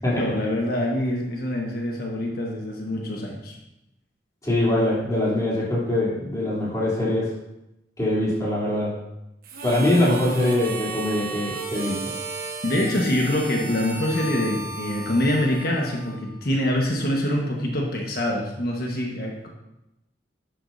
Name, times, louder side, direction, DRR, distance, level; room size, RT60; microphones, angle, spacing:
voice 1, 0.0-3.5 12.6-19.5, left 1 dB, 60° left, -1 dB, 1.4 m, -25 dB
voice 2, 4.4-7.3 8.0-8.9 9.6-12.0, left 1 dB, 20° left, -7 dB, 3.3 m, -23 dB
Harmonica, 9.4-16.4, right 2 dB, 55° right, 1.2 m, -35 dB
11.5 x 8.6 x 2.7 m, 0.88 s
head